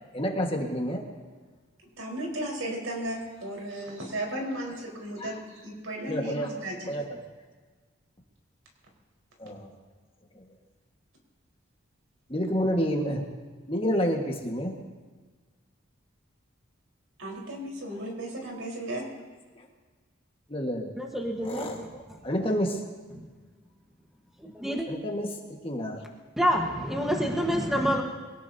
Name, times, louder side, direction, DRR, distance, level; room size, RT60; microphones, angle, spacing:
voice 1, 0.1-1.0 5.2-5.3 6.1-6.5 6.9-7.0 9.4-9.7 10.4-10.5 12.3-13.2 13.7-14.7 20.5-20.9 21.4-22.8 24.9-25.3 25.6-26.0, equal, 25° left, 1 dB, 1.7 m, -29 dB
voice 2, 2.0-6.9 17.2-19.0, right 1 dB, 85° right, -1 dB, 4.6 m, -35 dB
voice 3, 21.0-21.9 23.1-23.3 24.4-24.9 26.4-28.0, equal, ahead, 0 dB, 1.4 m, -27 dB
23.5 x 17.5 x 2.9 m, 1.4 s
head